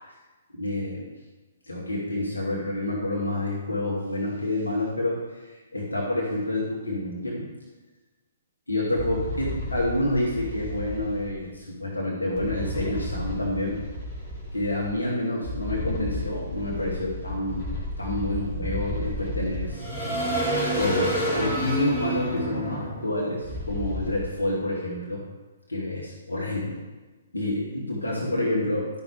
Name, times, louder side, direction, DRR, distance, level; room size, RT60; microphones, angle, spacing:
voice 1, 0.5-1.1 1.7-7.5 8.7-13.8 14.5-17.7 18.0-19.9 20.8-25.2 25.7-26.8 27.3-28.9, left 1 dB, 80° left, -4 dB, 2.1 m, -28 dB
sound 1, 9.0-11.3 12.4-14.9 15.4-24.2, equal, 35° left, 3.1 m, -31 dB
11.5 x 6.0 x 3.3 m, 1.2 s
figure-of-eight pair, 125°, 0 cm